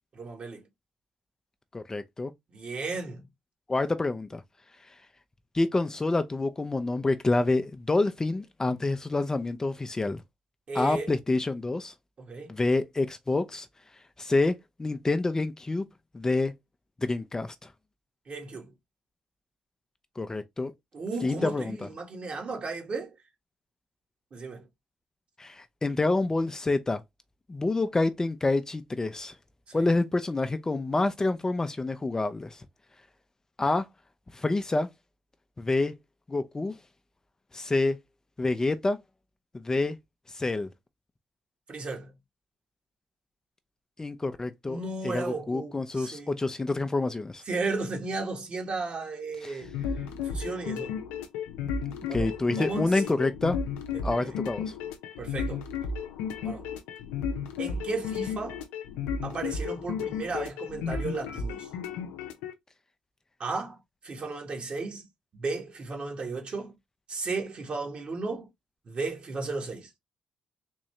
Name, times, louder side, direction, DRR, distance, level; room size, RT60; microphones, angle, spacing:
voice 1, 0.1-0.6 2.5-3.2 10.7-11.1 12.2-12.6 18.3-18.7 20.9-23.1 24.3-24.6 29.7-29.8 41.7-42.1 44.6-46.4 47.5-49.7 50.2-51.0 52.1-53.2 53.9-54.3 55.2-55.6 56.4-56.6 57.6-58.6 59.2-61.7 63.4-63.8 64.0-65.1 65.3-66.7 67.1-68.5 68.9-69.9, right 3 dB, 50° right, 1.5 m, -34 dB
voice 2, 1.7-2.3 3.7-4.4 5.5-10.2 10.7-11.9 12.5-13.7 14.2-15.8 16.1-16.5 17.0-17.7 20.2-20.7 21.2-21.9 25.4-27.0 27.5-29.3 29.7-32.6 33.6-33.9 34.3-34.9 35.6-35.9 36.3-36.7 37.5-38.0 38.4-39.0 39.5-40.0 40.3-40.7 44.0-47.4 49.4-49.6 52.1-53.6 54.0-54.7, left 2 dB, 25° left, 0.5 m, -27 dB
sound 1, 49.6-62.5, left 6 dB, 90° left, 0.6 m, -33 dB
3.8 x 2.6 x 3.2 m
supercardioid pair, 60°, 3 cm